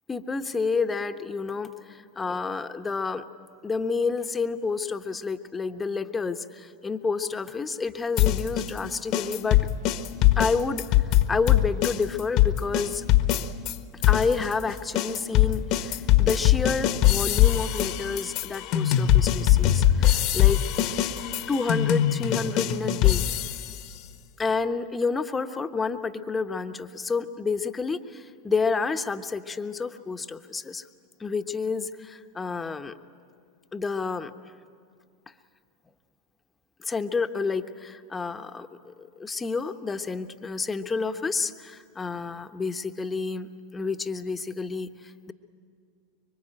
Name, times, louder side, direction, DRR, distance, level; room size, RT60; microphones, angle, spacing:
voice 1, 0.1-3.2 3.6-9.6 10.4-13.0 14.1-20.6 21.5-23.3 24.4-30.8 31.2-32.9 33.7-34.3 36.8-45.3, left 4 dB, 20° left, 8 dB, 1.1 m, -29 dB
sound 1, 8.2-13.7 14.0-23.8, left 12 dB, 55° left, 1.3 m, -22 dB
25.0 x 24.0 x 9.0 m, 2.3 s
hypercardioid pair, 90°, 0 cm